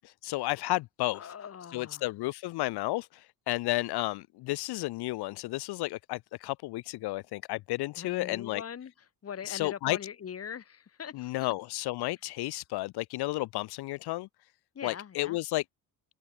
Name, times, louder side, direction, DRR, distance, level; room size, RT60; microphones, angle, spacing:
voice 1, 0.0-1.3 1.7-8.6 9.4-10.0 11.1-14.3 14.8-15.6, left 19 dB, 75° left, 0.8 m, -32 dB
voice 2, 1.1-2.1 8.0-8.9 9.2-11.5 14.7-15.4, left 8 dB, 35° left, 7.4 m, -42 dB
cardioid pair, 160°, 39 cm